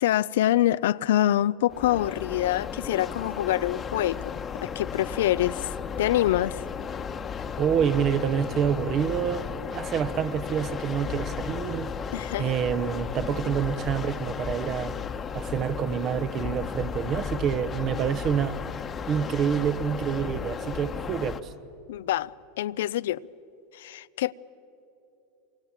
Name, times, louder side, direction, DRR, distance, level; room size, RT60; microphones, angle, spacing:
voice 1, 0.0-5.7 6.0-6.6 12.1-12.5 21.9-22.3 22.6-23.3 23.7-24.3, left 13 dB, 75° left, 0.5 m, -25 dB
sound 1, 1.7-21.4, left 6 dB, 25° left, 1.1 m, -34 dB
voice 2, 7.6-11.9 12.4-15.0 15.3-18.6 19.1-21.5, right 8 dB, 40° right, 1.0 m, -27 dB
27.0 x 24.0 x 7.4 m
hypercardioid pair, 105°, 0 cm